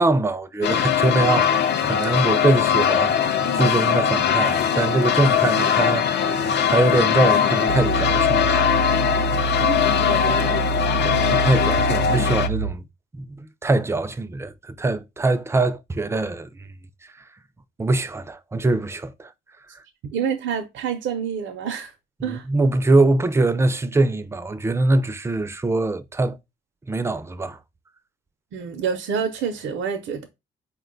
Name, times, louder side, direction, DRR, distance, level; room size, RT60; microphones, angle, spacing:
voice 1, 0.0-8.7 11.0-12.8 13.1-16.7 17.8-19.3 22.3-26.4 26.9-27.6, right 2 dB, 15° right, 0.4 m, -23 dB
sound 1, 0.6-12.5, left 8 dB, 60° left, 0.5 m, -20 dB
sound 2, 7.7-12.7, right 5 dB, 90° left, 0.9 m, -27 dB
voice 2, 9.6-10.6 11.1-11.4 20.1-21.9 22.2-22.5 28.5-30.3, right 7 dB, 70° right, 0.6 m, -28 dB
4.2 x 2.2 x 3.8 m
cardioid pair, 90°, 20 cm